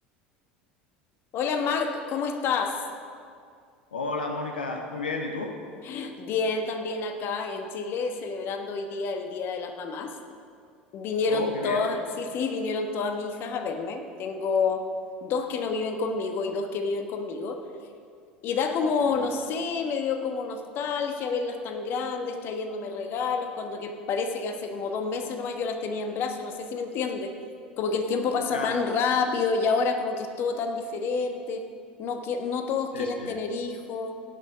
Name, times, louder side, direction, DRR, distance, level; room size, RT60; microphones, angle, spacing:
voice 1, 1.3-2.8 5.8-10.2 10.9-14.9 15.2-17.6 18.4-27.3 27.8-31.6 32.0-34.2, left 4 dB, 45° left, 6 dB, 1.1 m, -29 dB
voice 2, 3.9-5.5 11.2-11.9 19.1-19.3 28.5-28.8 32.9-33.4, left 3 dB, 80° left, 3 dB, 0.9 m, -32 dB
17.0 x 6.5 x 5.1 m, 2.3 s
figure-of-eight pair, 75°, 5 cm